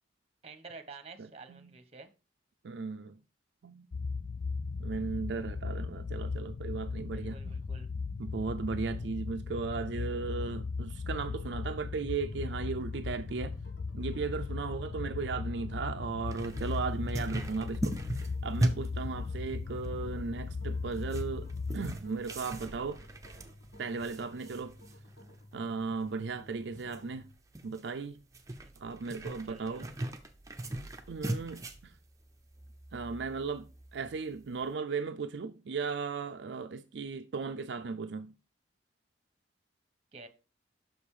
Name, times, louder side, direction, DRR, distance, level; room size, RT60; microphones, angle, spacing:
voice 1, 0.4-2.1 7.1-7.9 28.6-28.7 29.5-29.9 40.1-40.3, right 4 dB, 35° right, 1.0 m, -49 dB
voice 2, 2.6-3.2 3.6-3.9 4.8-7.6 8.2-13.6 13.9-23.0 23.8-24.8 25.5-27.3 27.6-28.2 28.8-29.9 31.1-31.9 32.9-38.3, right 4 dB, 75° right, 0.4 m, -36 dB
sound 1, 3.9-21.9, left 4 dB, 45° left, 0.3 m, -37 dB
sound 2, 12.0-27.3, left 1 dB, 75° left, 2.1 m, -54 dB
sound 3, 16.3-34.7, right 1 dB, 20° right, 0.8 m, -40 dB
6.2 x 5.3 x 4.9 m
head